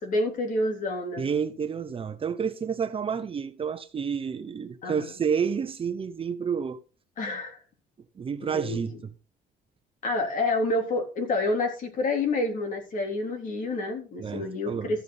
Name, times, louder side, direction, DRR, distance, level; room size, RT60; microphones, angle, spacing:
voice 1, 0.0-1.3 4.8-5.1 7.2-7.6 8.5-8.8 10.0-15.0, left 2 dB, 50° left, 3.5 m, -28 dB
voice 2, 1.2-6.8 8.1-9.1 14.2-14.9, right 6 dB, 35° right, 0.9 m, -30 dB
14.0 x 7.4 x 4.1 m
cardioid pair, 110°, 17 cm